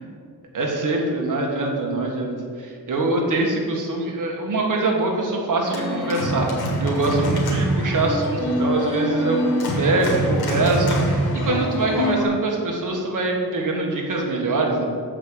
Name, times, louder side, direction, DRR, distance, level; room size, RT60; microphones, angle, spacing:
voice 1, 0.5-9.4 9.8-14.9, right 2 dB, 55° right, 0 dB, 1.7 m, -24 dB
Organ, 5.6-12.3, equal, 80° left, 1.8 m, -24 dB
6.8 x 5.0 x 6.9 m, 2.2 s
cardioid pair, 95°, 37 cm